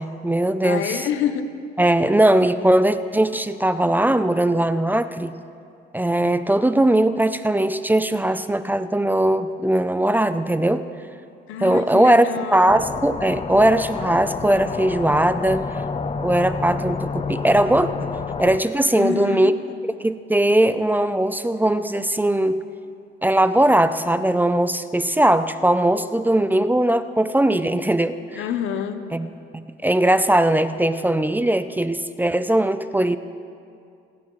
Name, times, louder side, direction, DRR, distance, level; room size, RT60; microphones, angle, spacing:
voice 1, 0.0-1.1 1.8-5.3 5.9-10.8 11.6-12.3 12.5-15.8 16.2-18.1 18.4-19.5 20.0-22.6 23.2-28.4 29.1-33.2, right 1 dB, 10° right, 12 dB, 0.5 m, -19 dB
voice 2, 0.6-1.5 11.5-12.7 18.9-19.5 28.4-29.0, left 9 dB, 90° left, 9 dB, 0.9 m, -27 dB
sound 1, 12.7-18.6, left 5 dB, 30° left, 0.6 m, -29 dB
28.5 x 9.9 x 3.1 m, 2.4 s
cardioid pair, 90°, 20 cm